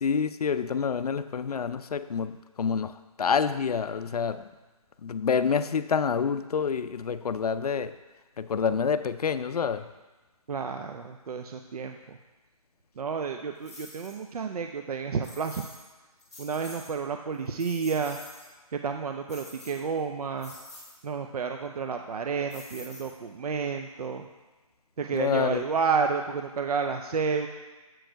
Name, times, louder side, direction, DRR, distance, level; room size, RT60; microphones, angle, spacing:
voice 1, 0.0-4.5 5.0-7.9 8.4-9.9 25.1-25.6, left 6 dB, 85° left, 12 dB, 0.4 m, -27 dB
voice 2, 10.5-12.2 13.0-15.6 16.4-18.2 18.7-20.5 21.0-24.3 25.0-27.5, right 5 dB, 75° right, 5 dB, 0.5 m, -30 dB
sound 1, 13.6-14.2 15.2-15.9 16.2-16.9 17.3-18.5 19.3-20.0 20.4-21.0 22.5-23.4, left 1 dB, ahead, 0.5 m, -47 dB
7.7 x 4.6 x 4.5 m, 1.2 s
hypercardioid pair, 170°, 19 cm